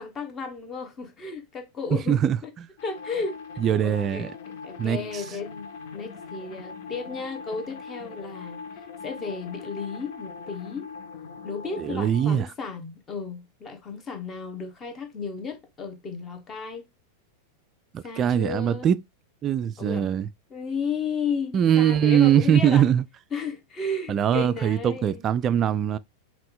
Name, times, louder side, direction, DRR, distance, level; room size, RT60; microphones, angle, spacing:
voice 1, 0.0-2.5 2.8-3.4 3.8-4.3 4.6-8.6 9.0-10.9 11.4-16.8 18.0-18.9 19.8-20.1 20.5-22.9 23.3-25.2, left 4 dB, 25° left, 1.1 m, -33 dB
voice 2, 2.1-2.4 3.6-4.3 4.8-5.2 11.8-12.5 17.9-19.0 19.4-20.3 21.5-23.0 24.1-26.0, right 9 dB, 30° right, 0.3 m, -22 dB
sound 1, 2.8-12.3, left 5 dB, 55° left, 0.7 m, -41 dB
5.5 x 2.4 x 3.8 m
figure-of-eight pair, 90°, 0 cm